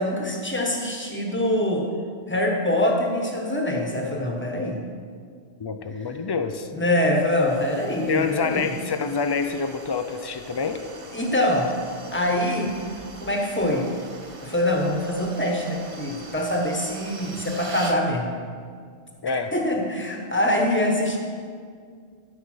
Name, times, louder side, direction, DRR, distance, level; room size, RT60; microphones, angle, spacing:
voice 1, 0.0-1.9 2.3-4.8 6.7-8.7 11.1-11.7 12.1-12.8 13.2-13.9 14.4-18.3 19.3-21.2, left 1 dB, 10° left, 0 dB, 1.2 m, -24 dB
voice 2, 5.6-6.7 8.1-10.8 19.2-19.5, left 5 dB, 40° left, 8 dB, 0.3 m, -27 dB
sound 1, 7.2-18.0, right 3 dB, 35° right, 0.7 m, -43 dB
13.5 x 5.4 x 6.4 m, 2.1 s
omnidirectional pair, 1.2 m